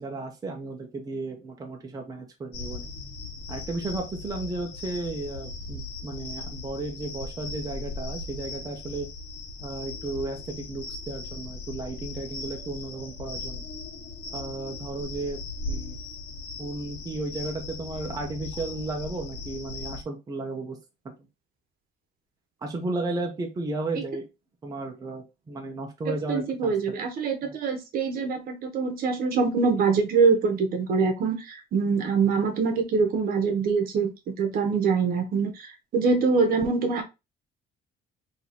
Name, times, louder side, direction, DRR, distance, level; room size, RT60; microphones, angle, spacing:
voice 1, 0.0-2.9 3.5-9.1 9.6-13.6 14.3-15.4 15.6-16.0 16.6-20.8 22.6-24.3 24.6-26.7 27.4-27.6, right 2 dB, 20° right, 2 dB, 0.8 m, -34 dB
sound 1, 2.5-20.0, left 3 dB, 75° left, 1.4 m, -38 dB
voice 2, 26.1-34.1 34.4-37.0, right 5 dB, 60° right, 5 dB, 1.1 m, -24 dB
3.0 x 2.9 x 4.2 m, 0.25 s
cardioid pair, 150°, 17 cm